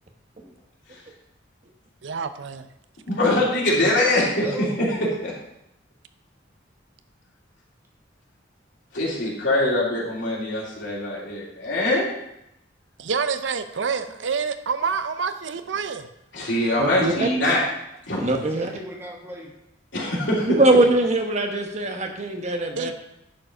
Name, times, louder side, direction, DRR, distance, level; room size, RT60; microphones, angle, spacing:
voice 1, 2.0-2.7 13.0-16.1 22.8-22.9, right 5 dB, 75° right, 10 dB, 0.6 m, -27 dB
voice 2, 3.1-4.5 5.2-5.3 8.9-12.1 16.3-17.6 18.1-18.3 19.9-20.6, left 1 dB, 70° left, -5 dB, 2.9 m, -23 dB
voice 3, 3.9-4.9 18.4-19.5, equal, 15° right, 0 dB, 1.5 m, -38 dB
voice 4, 16.8-17.3 18.2-18.7 20.5-22.9, right 2 dB, 40° right, 4 dB, 1.1 m, -21 dB
11.0 x 4.9 x 5.0 m, 0.84 s
head